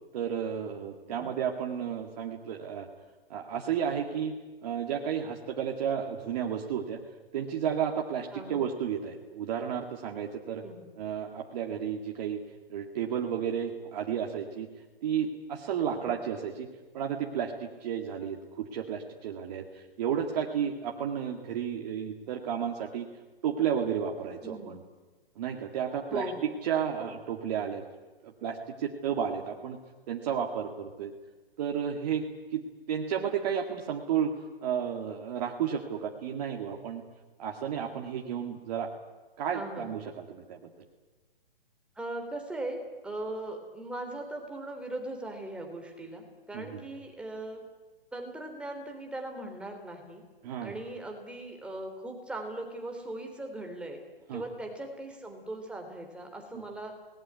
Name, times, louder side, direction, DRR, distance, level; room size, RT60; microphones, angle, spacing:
voice 1, 0.1-2.9 3.3-4.3 4.6-7.0 7.3-10.6 11.0-12.4 12.7-14.7 15.0-16.7 16.9-23.1 23.4-24.8 25.4-26.3 26.6-27.8 28.2-29.8 30.1-31.1 31.6-37.0 37.4-38.9 39.4-40.7 46.5-46.8 50.4-50.7 54.3-54.4, right 8 dB, 40° right, 1 dB, 2.2 m, -32 dB
voice 2, 8.3-8.6 10.6-10.9 15.9-16.2 24.4-24.8 26.1-26.5 27.0-27.2 39.5-39.9 42.0-42.8 43.0-47.6 48.1-50.2 50.6-54.0 54.3-56.9, right 1 dB, 5° right, 2 dB, 3.4 m, -39 dB
20.0 x 19.5 x 9.7 m, 1.2 s
figure-of-eight pair, 130°, 30 cm